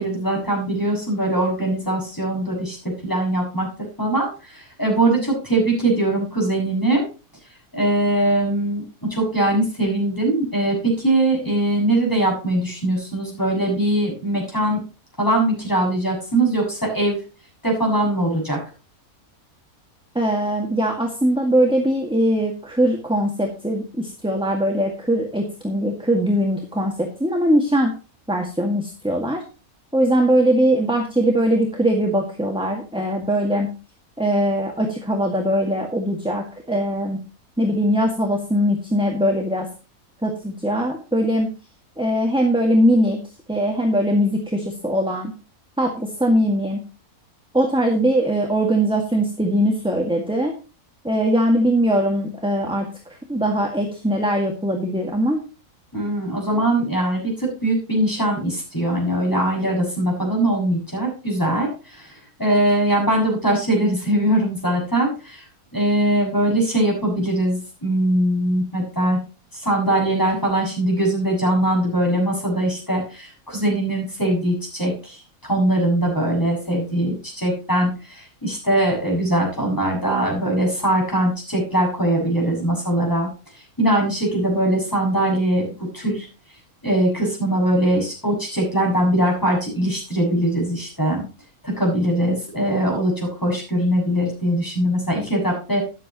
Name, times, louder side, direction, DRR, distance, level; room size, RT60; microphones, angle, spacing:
voice 1, 0.0-3.7 4.0-7.1 7.7-8.8 9.1-14.8 15.2-17.2 17.6-18.6 55.9-65.4 65.7-69.2 69.5-83.3 83.8-85.7 85.9-86.3 86.8-91.2 91.6-95.8, right 1 dB, 15° left, -1 dB, 6.9 m, -21 dB
voice 2, 20.2-27.9 28.3-29.4 29.9-33.7 34.2-37.2 37.6-39.7 40.2-41.5 42.0-43.2 43.5-45.3 45.8-46.8 47.5-50.5 51.0-55.4, equal, 5° right, 1 dB, 1.8 m, -21 dB
13.5 x 10.5 x 3.0 m, 0.33 s
omnidirectional pair, 1.6 m